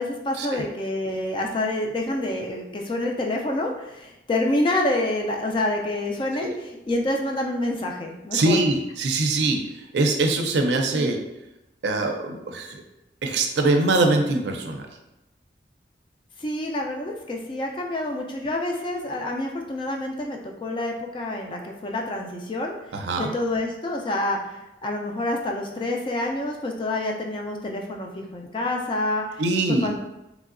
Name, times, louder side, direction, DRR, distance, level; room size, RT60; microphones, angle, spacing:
voice 1, 0.0-8.6 10.9-11.1 16.4-22.7 23.2-29.4 29.8-30.0, left 1 dB, 30° left, 1 dB, 0.3 m, -27 dB
voice 2, 8.3-9.6 9.9-11.2 11.8-12.8 13.2-14.9 22.9-23.3 29.4-29.9, right 2 dB, 75° right, 4 dB, 0.4 m, -23 dB
3.0 x 2.6 x 2.5 m, 0.94 s
head